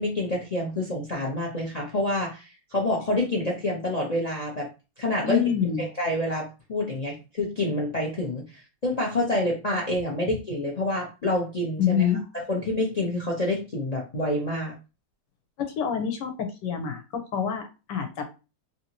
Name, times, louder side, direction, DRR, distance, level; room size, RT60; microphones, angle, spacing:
voice 1, 0.0-4.7 5.0-5.4 6.0-12.0 12.5-14.8, left 1 dB, 55° left, -1 dB, 0.4 m, -27 dB
voice 2, 5.2-5.9 11.8-12.2 15.6-18.2, left 8 dB, 85° left, 6 dB, 1.4 m, -26 dB
3.4 x 2.7 x 2.9 m, 0.30 s
omnidirectional pair, 1.9 m